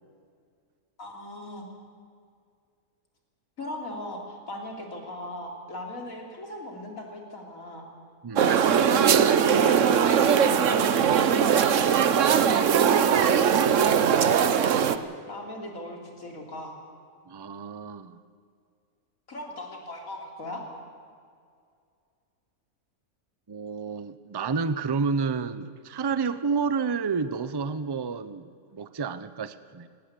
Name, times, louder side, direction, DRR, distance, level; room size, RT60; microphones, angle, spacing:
voice 1, 1.0-1.7 3.6-7.9 9.4-11.8 12.2-12.6 14.0-14.9 15.3-16.7 19.3-20.6, left 1 dB, 65° left, 1 dB, 3.7 m, -38 dB
voice 2, 8.2-8.5 17.3-18.2 23.5-29.9, right 5 dB, 30° right, 13 dB, 0.5 m, -30 dB
Sao Paulo Market, 8.4-15.0, right 7 dB, 60° right, 1.2 m, -20 dB
19.0 x 18.5 x 8.4 m, 2.2 s
omnidirectional pair, 1.5 m